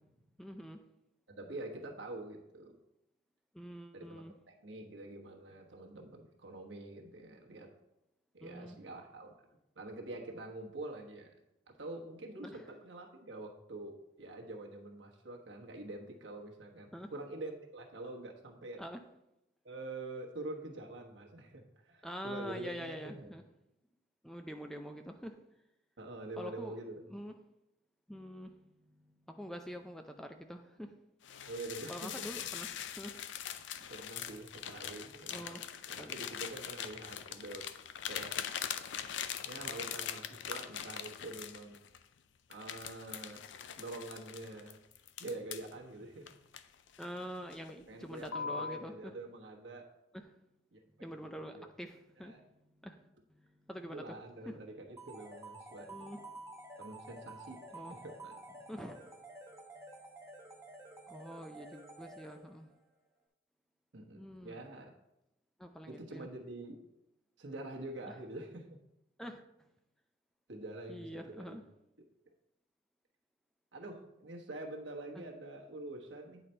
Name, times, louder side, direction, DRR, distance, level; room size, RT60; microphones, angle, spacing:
voice 1, 0.4-0.8 3.6-4.3 8.4-8.8 12.4-12.6 16.9-17.1 18.8-19.0 22.0-23.4 24.2-25.3 26.4-26.8 27.1-27.3 28.1-28.5 29.4-30.9 31.9-32.7 33.0-33.1 35.3-35.6 36.0-36.1 47.0-49.1 51.0-52.3 52.8-53.0 53.7-54.2 54.5-54.6 55.9-56.2 57.7-58.0 58.7-59.0 61.1-62.7 64.2-64.6 65.6-66.3 69.2-69.4 70.9-71.6 75.2-75.3, equal, ahead, 5 dB, 0.4 m, -45 dB
voice 2, 1.3-2.8 3.9-7.7 8.3-9.5 9.7-11.4 11.7-18.8 19.6-23.3 26.0-27.2 31.5-32.3 33.9-35.6 35.9-37.7 38.1-38.5 39.4-41.8 42.5-43.4 43.8-44.8 45.2-46.3 47.9-49.9 50.7-51.6 52.2-52.4 53.9-56.1 56.8-58.4 63.9-64.9 65.9-66.8 67.4-68.8 70.5-71.6 73.7-76.4, right 2 dB, 85° right, 0 dB, 1.2 m, -46 dB
sound 1, 31.2-42.0 42.5-45.7 46.3-47.2 47.5-47.8 48.2-48.8, left 8 dB, 85° left, 0.4 m, -42 dB
sound 2, 55.0-62.7, right 2 dB, 15° right, 0.8 m, -51 dB
9.2 x 4.0 x 4.3 m, 0.87 s
head